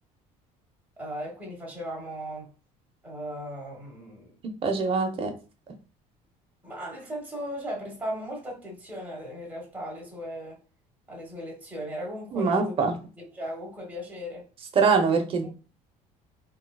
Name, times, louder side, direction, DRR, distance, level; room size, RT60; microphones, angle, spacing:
voice 1, 1.0-2.5 3.0-4.3 6.6-10.6 11.1-12.8 13.2-14.4, equal, 10° right, 1.2 m, -37 dB
voice 2, 4.6-5.3 12.3-13.0 14.8-15.5, right 5 dB, 40° right, 0.7 m, -23 dB
3.7 x 2.3 x 2.3 m
cardioid pair, 140°, 15 cm